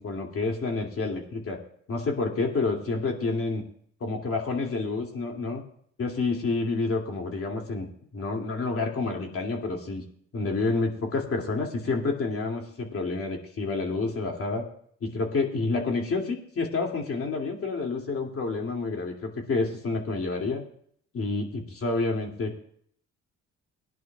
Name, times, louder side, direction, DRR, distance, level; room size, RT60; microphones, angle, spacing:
voice 1, 0.0-1.6 1.9-3.6 4.0-5.6 6.0-10.0 10.3-14.7 15.0-20.6 21.1-22.5, left 3 dB, 50° left, 1 dB, 2.6 m, -29 dB
20.0 x 10.5 x 2.4 m, 0.62 s
cardioid pair, 90°, 30 cm